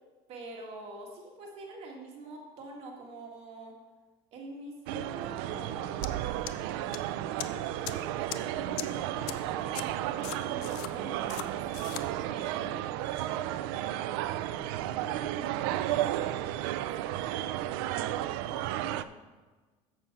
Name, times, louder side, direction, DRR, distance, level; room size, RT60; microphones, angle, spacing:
voice 1, 0.3-3.8 4.3-6.6 7.4-11.9 12.3-12.6 16.8-16.9, right 2 dB, 55° right, 0 dB, 1.9 m, -45 dB
sound 1, 4.9-19.0, right 13 dB, 90° right, 0.4 m, -33 dB
sound 2, 6.0-6.1 6.5-7.0 7.4-7.5 7.8-7.9 8.3-8.4 8.8-8.9 9.3-9.4 9.7-9.8 10.2-10.9 11.3-11.5 11.7-12.0, left 15 dB, 85° left, 0.6 m, -38 dB
voice 2, 12.1-16.0 16.4-17.4 18.1-19.3, left 3 dB, 45° left, -3 dB, 3.0 m, -55 dB
7.2 x 6.8 x 5.9 m, 1.3 s
cardioid pair, 130°, 12 cm